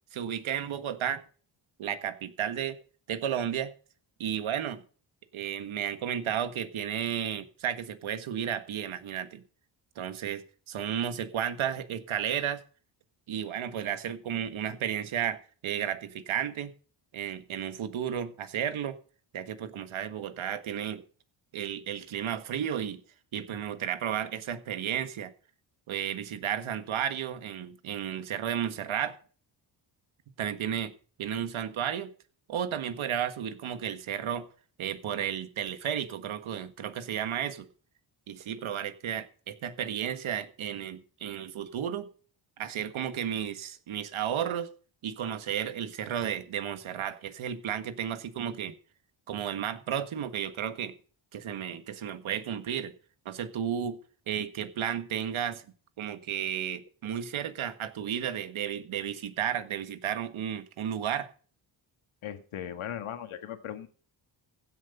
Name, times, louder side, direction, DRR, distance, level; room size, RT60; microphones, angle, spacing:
voice 1, 0.1-1.2 1.8-2.8 3.1-3.7 4.2-4.8 5.3-9.4 9.9-12.6 13.3-16.7 17.1-19.0 19.3-21.0 21.5-23.0 23.3-25.3 25.9-29.2 30.4-30.9 31.2-32.1 32.5-34.5 34.8-37.7 38.3-42.1 42.6-44.7 45.0-48.7 49.3-50.9 51.3-52.9 53.2-54.0 54.3-55.6 56.0-61.3, right 9 dB, 75° right, 1.7 m, -33 dB
voice 2, 62.2-63.9, left 10 dB, 80° left, 1.7 m, -38 dB
16.0 x 7.8 x 5.4 m
cardioid pair, 85°, 49 cm